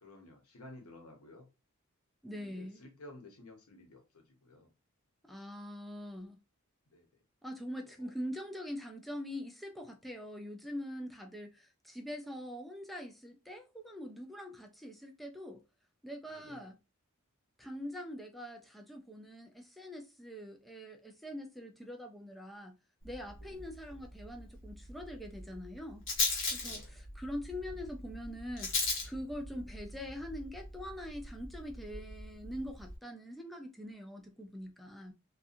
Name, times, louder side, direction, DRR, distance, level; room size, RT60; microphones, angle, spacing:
voice 1, 0.0-1.5 2.3-4.7 6.9-7.2 7.8-8.1 16.2-16.7 23.4-23.6 23.9-24.1 26.4-27.0, left 2 dB, 85° left, 0.9 m, -54 dB
voice 2, 2.2-2.8 5.3-6.4 7.4-15.6 16.0-16.8 17.6-22.8 23.0-26.0 26.5-28.8 29.0-35.1, equal, ahead, 0.3 m, -43 dB
Rattle, 23.0-33.0, left 3 dB, 60° left, 1.0 m, -39 dB
2.6 x 2.3 x 2.4 m
head